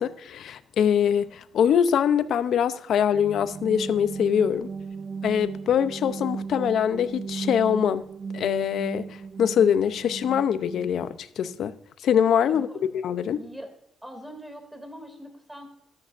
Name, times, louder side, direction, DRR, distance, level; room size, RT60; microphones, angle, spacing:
voice 1, 0.0-4.7 5.2-8.1 8.3-11.8 12.0-12.7 12.9-13.4, left 8 dB, 70° left, 0.6 m, -23 dB
sound 1, 3.1-10.9, right 5 dB, 45° right, 0.5 m, -36 dB
voice 2, 12.5-12.9 13.3-13.7 14.0-15.7, equal, 5° right, 2.6 m, -42 dB
13.0 x 11.0 x 2.6 m
cardioid pair, 90°, 0 cm